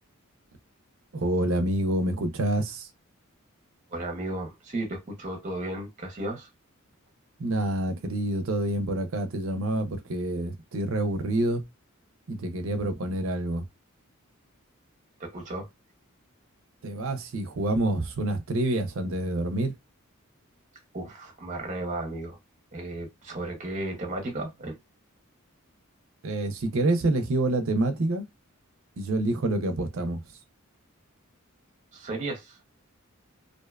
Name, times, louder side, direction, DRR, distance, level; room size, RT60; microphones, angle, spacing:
voice 1, 1.1-2.9 7.4-11.6 12.3-13.7 16.8-19.7 26.2-28.2 29.0-30.2, right 1 dB, 70° right, 0.5 m, -27 dB
voice 2, 3.9-6.5 15.2-15.7 20.9-22.4 22.7-24.8 31.9-32.6, right 2 dB, 35° right, 0.7 m, -34 dB
2.5 x 2.2 x 2.3 m
head